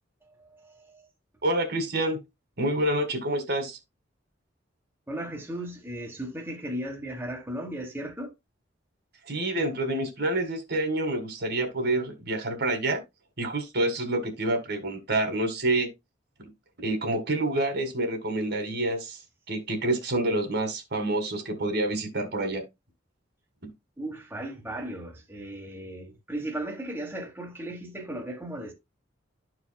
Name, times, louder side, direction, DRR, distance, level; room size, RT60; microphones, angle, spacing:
voice 1, 0.4-1.1 5.1-8.3 24.0-28.7, right 1 dB, 10° right, 1.3 m, -36 dB
voice 2, 1.4-2.2 2.6-3.8 9.3-13.0 13.4-15.9 16.4-16.5 16.8-19.2 19.5-22.6, right 1 dB, 60° right, 1.8 m, -27 dB
12.5 x 4.8 x 2.2 m
head